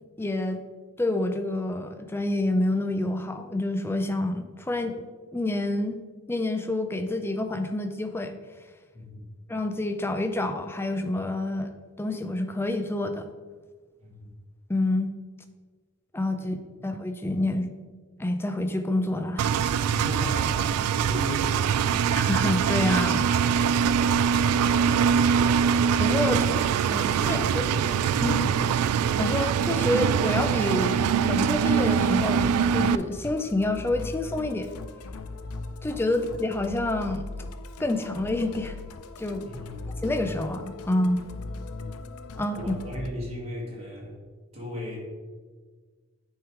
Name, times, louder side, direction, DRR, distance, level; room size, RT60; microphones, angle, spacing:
voice 1, 0.2-0.6 1.0-5.1 5.3-6.0 6.3-8.4 9.5-11.7 12.0-13.3 14.7-15.1 16.1-16.6 16.8-17.7 18.2-19.6 22.2-23.2 26.0-26.4 26.8-27.6 28.2-28.5 29.2-34.7 35.8-37.3 37.8-38.8 39.2-39.5 40.0-41.2 42.4-42.7, left 2 dB, 10° left, 6 dB, 0.4 m, -28 dB
voice 2, 8.9-9.3 14.0-14.3 16.4-16.5 19.9-22.0 23.0-23.2 26.2-26.6 27.0-28.7 36.1-36.2 39.4-40.0 41.7-41.9 42.5-44.2 44.5-45.0, equal, 25° right, -4 dB, 1.9 m, -36 dB
Engine, 19.4-33.0, right 7 dB, 90° right, 0.3 m, -23 dB
Musical instrument, 31.1-43.1, left 3 dB, 80° left, 0.5 m, -39 dB
9.2 x 3.7 x 4.6 m, 1.5 s
head